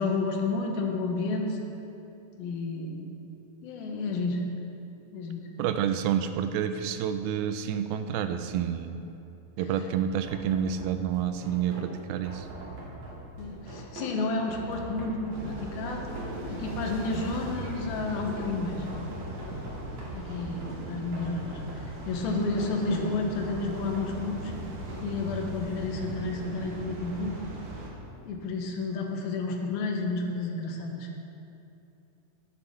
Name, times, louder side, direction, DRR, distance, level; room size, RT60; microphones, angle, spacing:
voice 1, 0.0-1.6 2.4-3.1 3.6-4.4 5.1-5.4 13.4-16.0 16.4-18.9 20.1-24.5 25.0-27.3 28.3-31.1, left 3 dB, 70° left, 1 dB, 2.8 m, -31 dB
voice 2, 5.6-9.0 9.6-12.5, right 9 dB, 85° right, 9 dB, 2.2 m, -29 dB
sound 1, 10.2-25.0, right 1 dB, 45° right, 2.7 m, -43 dB
sound 2, 15.3-27.9, right 1 dB, 65° right, 1.3 m, -39 dB
11.0 x 8.2 x 6.6 m, 2.8 s
omnidirectional pair, 4.8 m